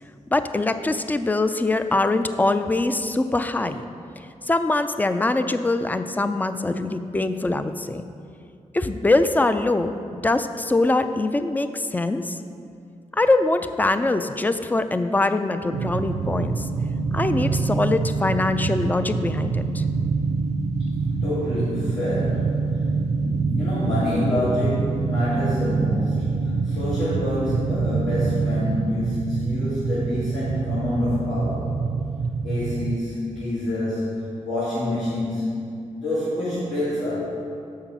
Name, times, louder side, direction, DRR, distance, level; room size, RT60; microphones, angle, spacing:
voice 1, 0.3-3.8 4.4-8.0 8.7-9.9 10.2-12.4 13.1-16.7 17.1-19.8, left 2 dB, 15° left, 10 dB, 0.4 m, -23 dB
sound 1, 15.7-33.0, right 4 dB, 60° right, 0.4 m, -25 dB
voice 2, 21.2-22.8 23.2-31.7 32.4-37.2, left 1 dB, 80° left, -12 dB, 2.1 m, -27 dB
6.7 x 5.6 x 5.9 m, 2.4 s
cardioid pair, 90°, 13 cm